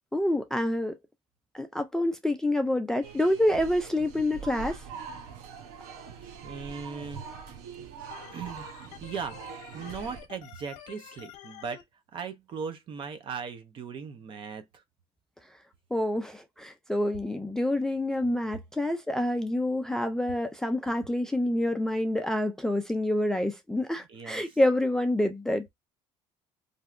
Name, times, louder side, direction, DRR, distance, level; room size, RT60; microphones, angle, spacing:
voice 1, 0.1-1.0 1.5-4.8 15.9-25.7, left 1 dB, 5° left, 0.3 m, -27 dB
sound 1, 3.0-10.2, right 6 dB, 90° right, 0.8 m, -43 dB
voice 2, 6.4-7.2 8.3-9.4 9.7-11.8 12.1-14.6 24.1-24.4, right 6 dB, 40° right, 0.7 m, -38 dB
Organ, 8.1-11.8, left 11 dB, 70° left, 0.8 m, -48 dB
3.2 x 2.6 x 2.4 m
cardioid pair, 140°, 13 cm